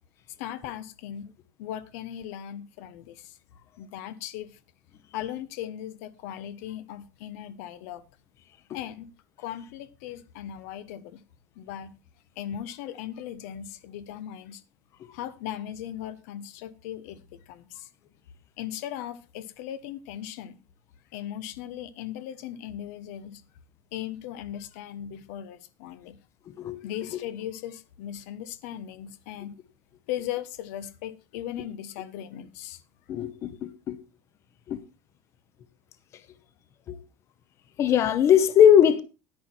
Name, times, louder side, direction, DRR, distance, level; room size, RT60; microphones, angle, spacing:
voice 1, 0.4-1.3 1.6-3.3 3.8-4.6 5.1-8.0 8.7-9.1 9.4-11.2 11.6-11.9 12.4-14.6 15.1-17.2 17.5-17.9 18.6-20.6 21.1-23.4 23.9-26.2 26.8-29.6 30.1-32.8, left 11 dB, 70° left, 1.0 m, -38 dB
voice 2, 33.1-34.0 34.7-34.8 36.9-37.0 37.8-39.0, left 9 dB, 35° left, 1.0 m, -20 dB
10.0 x 9.6 x 4.4 m
cardioid pair, 155°, 9 cm